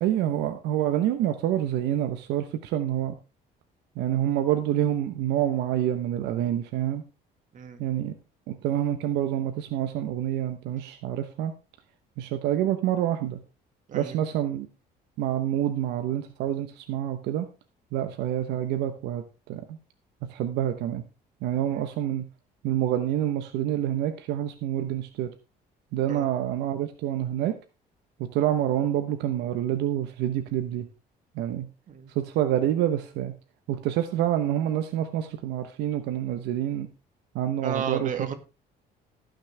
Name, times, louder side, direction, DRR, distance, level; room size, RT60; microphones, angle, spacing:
voice 1, 0.0-3.1 4.0-7.0 7.8-8.1 8.5-11.5 12.2-13.4 13.9-14.7 15.2-17.5 17.9-19.8 20.3-21.0 21.4-22.2 22.6-25.3 25.9-27.6 28.2-30.9 31.3-31.7 32.1-33.3 33.7-36.9 37.3-38.1, right 11 dB, 90° right, 8 dB, 1.0 m, -27 dB
voice 2, 37.6-38.3, right 7 dB, 50° right, 6 dB, 2.1 m, -32 dB
18.0 x 6.5 x 3.4 m, 0.30 s
cardioid pair, 110°, 17 cm